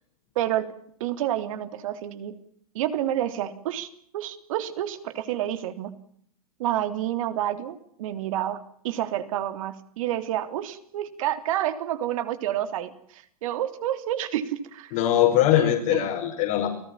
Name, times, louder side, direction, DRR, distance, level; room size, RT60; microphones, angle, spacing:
voice 1, 0.4-0.7 1.0-2.3 2.8-5.9 6.6-14.9 15.5-16.0, right 12 dB, 65° right, 9 dB, 3.4 m, -29 dB
voice 2, 14.9-16.7, left 12 dB, 55° left, 0 dB, 5.6 m, -21 dB
29.5 x 19.0 x 7.4 m, 0.66 s
hypercardioid pair, 100°, 19 cm